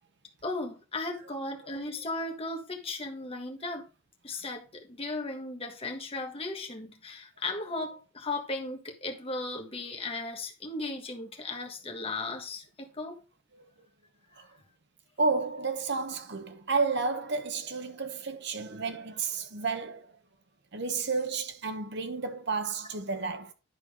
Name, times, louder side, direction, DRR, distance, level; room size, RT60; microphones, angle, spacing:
voice 1, 0.4-3.9 4.2-13.2, left 2 dB, 30° left, 1.5 m, -36 dB
voice 2, 15.2-20.2 20.7-23.5, right 4 dB, 60° right, 1.1 m, -31 dB
10.5 x 4.7 x 3.7 m
head